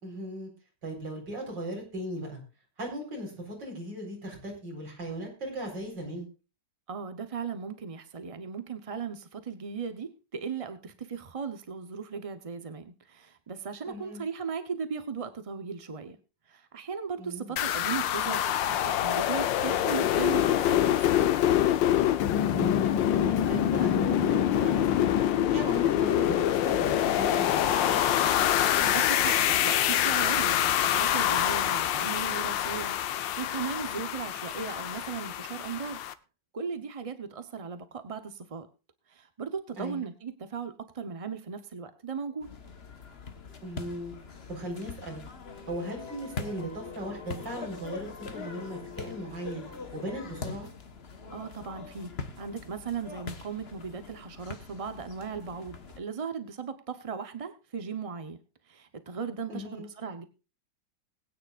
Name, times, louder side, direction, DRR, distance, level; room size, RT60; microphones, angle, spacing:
voice 1, 0.0-0.5 0.8-2.4 2.8-6.3 13.8-14.2 17.2-17.6 22.5-25.1 25.5-28.0 39.8-40.1 43.6-44.1 44.5-45.2 45.7-49.7 49.9-50.7 59.5-59.9, right 1 dB, 75° right, 0 dB, 4.9 m, -37 dB
voice 2, 6.9-16.2 16.5-21.3 28.8-36.0 36.5-38.7 39.1-42.5 51.3-52.1 52.4-58.4 58.7-60.2, right 6 dB, 40° right, 9 dB, 0.4 m, -37 dB
sound 1, 17.6-36.1, left 11 dB, 85° left, 1.5 m, -25 dB
sound 2, 42.4-56.0, left 4 dB, 40° left, 1.3 m, -43 dB
sound 3, 45.4-50.5, left 7 dB, 65° left, 2.4 m, -46 dB
20.5 x 9.4 x 2.4 m, 0.32 s
omnidirectional pair, 2.0 m